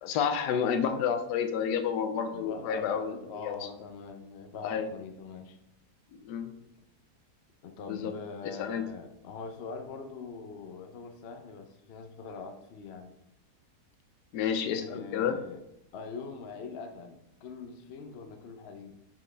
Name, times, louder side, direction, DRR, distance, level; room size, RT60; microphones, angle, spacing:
voice 1, 0.0-3.2 3.4-3.6 4.6-4.9 6.2-6.5 7.9-8.1 8.4-8.8 14.3-15.4, left 7 dB, 90° left, 7 dB, 1.2 m, -30 dB
voice 2, 2.3-5.6 7.6-13.1 14.7-15.6 15.9-19.0, left 4 dB, 60° left, 6 dB, 0.7 m, -43 dB
7.3 x 4.3 x 3.3 m, 0.83 s
omnidirectional pair, 1.7 m